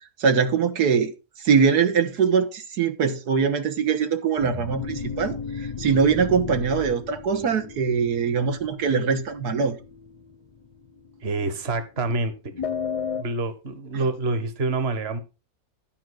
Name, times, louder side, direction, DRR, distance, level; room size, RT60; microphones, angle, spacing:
voice 1, 0.2-1.1 1.4-9.8, right 6 dB, 85° right, 1.8 m, -22 dB
sound 1, 4.4-11.7 12.5-13.2, left 6 dB, 40° left, 0.5 m, -34 dB
voice 2, 11.2-12.5 13.1-15.2, right 3 dB, 40° right, 1.5 m, -27 dB
12.5 x 5.1 x 6.3 m
omnidirectional pair, 1.6 m